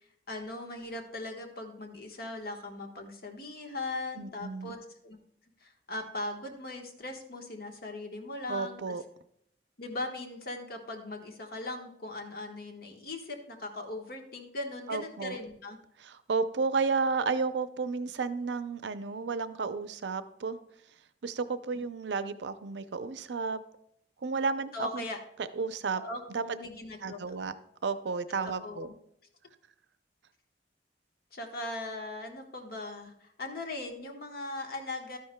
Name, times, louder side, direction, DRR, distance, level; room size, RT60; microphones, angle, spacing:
voice 1, 0.3-5.2 5.6-9.0 9.8-15.8 21.7-21.8 24.7-25.2 25.9-27.2 28.4-29.0 31.3-35.2, left 2 dB, 60° left, 3 dB, 1.3 m, -39 dB
voice 2, 4.2-4.7 8.5-9.0 14.9-15.4 16.0-20.6 21.2-23.6 24.2-25.0 25.4-26.0 26.3-26.4 27.0-27.5 27.8-28.9, right 4 dB, 75° right, 12 dB, 0.5 m, -32 dB
12.0 x 10.5 x 2.2 m, 0.73 s
head